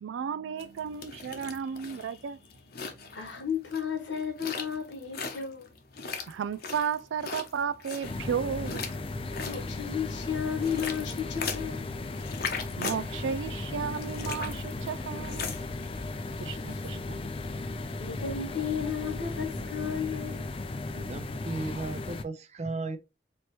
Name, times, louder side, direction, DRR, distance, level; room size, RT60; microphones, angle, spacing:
voice 1, 0.0-2.4 3.0-3.1 6.3-8.8 12.8-15.5 16.4-17.2, right 7 dB, 90° right, 0.3 m, -33 dB
sound 1, 0.6-16.9, left 5 dB, 55° left, 0.8 m, -40 dB
voice 2, 3.1-5.7 9.3-11.9 16.4-16.5 18.0-20.6, left 7 dB, 85° left, 1.3 m, -33 dB
sound 2, 8.0-22.2, left 2 dB, 30° left, 0.4 m, -36 dB
voice 3, 20.9-23.0, right 3 dB, 35° right, 0.6 m, -35 dB
4.3 x 3.0 x 3.1 m
head